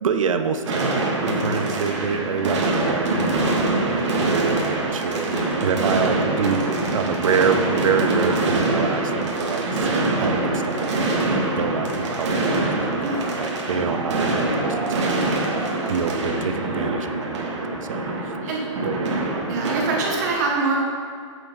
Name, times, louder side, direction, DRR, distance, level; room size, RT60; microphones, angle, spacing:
voice 1, 0.0-3.5 3.9-5.3 5.6-11.2 11.5-18.0 18.8-19.3, right 6 dB, 90° right, 7 dB, 0.8 m, -27 dB
sound 1, 0.7-20.3, right 2 dB, 65° right, 2.2 m, -24 dB
voice 2, 19.5-20.8, right 3 dB, 35° right, -1 dB, 1.3 m, -24 dB
9.2 x 7.8 x 4.0 m, 2.2 s
hypercardioid pair, 175°, 16 cm